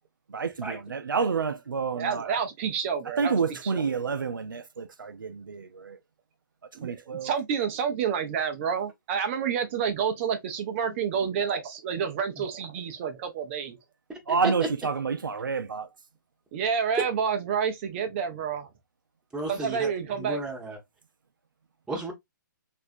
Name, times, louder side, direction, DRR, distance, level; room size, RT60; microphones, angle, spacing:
voice 1, 0.3-2.4 3.2-6.0 6.8-7.3 14.3-15.9, right 5 dB, 90° right, 0.5 m, -29 dB
voice 2, 1.9-3.4 3.6-4.0 6.7-13.8 16.5-18.7 19.5-20.4, right 7 dB, 35° right, 0.6 m, -29 dB
voice 3, 14.1-14.7 19.3-19.9 20.2-20.8 21.9-22.1, right 2 dB, 5° right, 1.0 m, -33 dB
3.1 x 2.5 x 2.5 m
hypercardioid pair, 135°, 11 cm